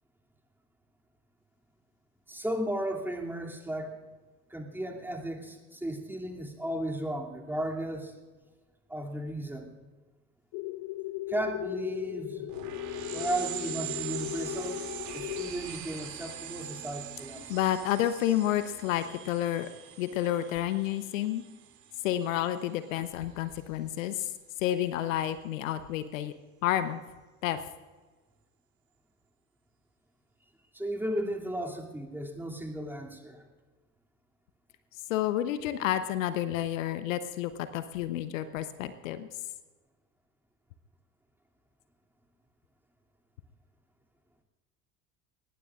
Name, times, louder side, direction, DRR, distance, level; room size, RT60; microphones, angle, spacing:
voice 1, 2.3-4.0 4.5-8.1 8.9-9.7 11.3-12.5 13.1-14.8 15.1-17.5 30.7-33.4, right 1 dB, 5° right, 0 dB, 2.7 m, -35 dB
sound 1, 10.5-15.5, left 17 dB, 45° left, 0.5 m, -37 dB
sound 2, 12.5-22.6, right 9 dB, 40° right, 2.6 m, -42 dB
voice 2, 17.5-19.7 20.0-21.4 22.0-24.3 24.6-26.3 26.6-27.0 27.4-27.6 35.1-39.3, left 12 dB, 65° left, 12 dB, 0.9 m, -30 dB
23.5 x 20.0 x 2.5 m, 1.3 s
figure-of-eight pair, 70°, 43 cm